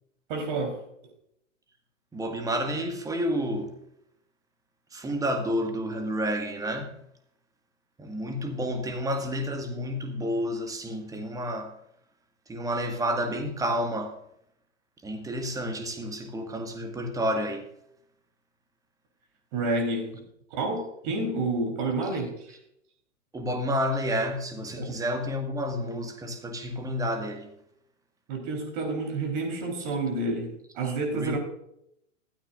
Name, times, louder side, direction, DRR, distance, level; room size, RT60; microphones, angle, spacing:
voice 1, 0.3-0.8 19.5-20.2 20.5-22.6 24.8-25.0 28.3-31.4, right 2 dB, 40° right, 3.8 m, -29 dB
voice 2, 2.1-3.7 4.9-6.9 8.0-11.7 12.5-14.2 15.0-17.6 23.3-27.5 31.1-31.4, equal, 10° right, 1.7 m, -30 dB
15.0 x 13.0 x 2.5 m
figure-of-eight pair, 105°, 38 cm